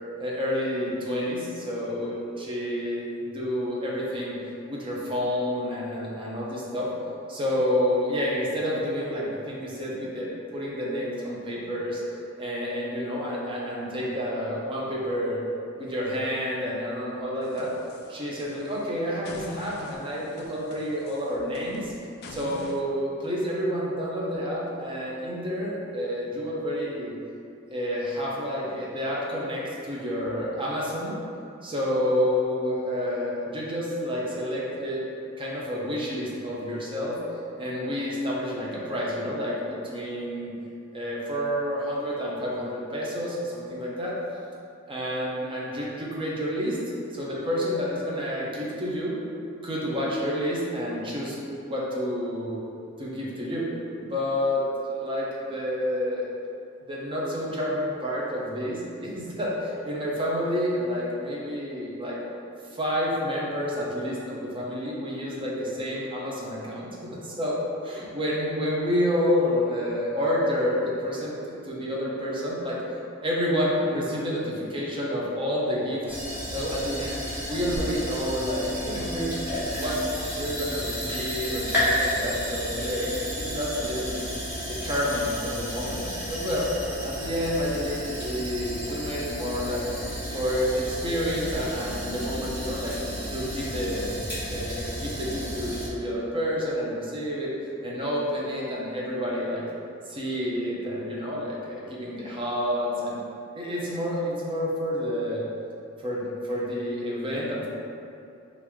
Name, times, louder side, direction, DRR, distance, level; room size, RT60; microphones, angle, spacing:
voice 1, 0.2-4.4 4.7-6.9 7.3-12.0 12.4-15.4 15.8-17.7 18.1-21.9 22.3-27.1 27.7-31.2 31.6-35.0 35.4-37.2 37.6-40.5 40.9-44.2 44.9-46.8 47.1-49.2 49.6-51.4 51.6-52.6 53.0-53.7 54.0-56.3 56.9-62.2 62.6-67.6 67.8-73.0 73.2-76.2 76.5-77.2 77.5-79.4 79.8-80.0 80.4-84.2 84.7-86.7 87.0-89.8 90.3-93.0 93.3-97.5 97.8-99.6 100.1-103.2 103.5-105.4 106.0-107.7, equal, 25° right, -5 dB, 0.5 m, -29 dB
sound 1, 17.4-18.8 19.2-22.8, left 2 dB, 50° left, 0.3 m, -44 dB
sound 2, 76.1-95.9, equal, 10° right, 1.1 m, -32 dB
3.1 x 2.5 x 3.4 m, 2.6 s
head